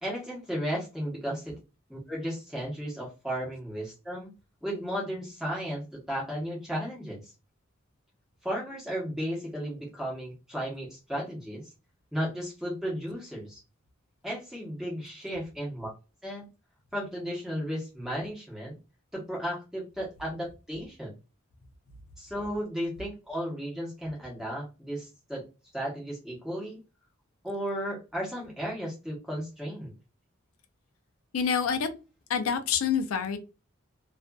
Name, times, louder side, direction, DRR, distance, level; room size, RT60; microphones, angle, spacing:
voice 1, 0.0-1.6 1.9-4.3 4.6-7.3 8.4-11.6 12.1-13.6 14.2-15.9 16.2-16.5 16.9-18.7 19.1-21.1 22.2-25.4 25.7-26.8 27.4-29.9, equal, ahead, -4 dB, 0.9 m, -34 dB
voice 2, 31.3-31.9 32.3-33.4, left 7 dB, 90° left, 9 dB, 0.4 m, -27 dB
2.4 x 2.4 x 2.2 m, 0.30 s
head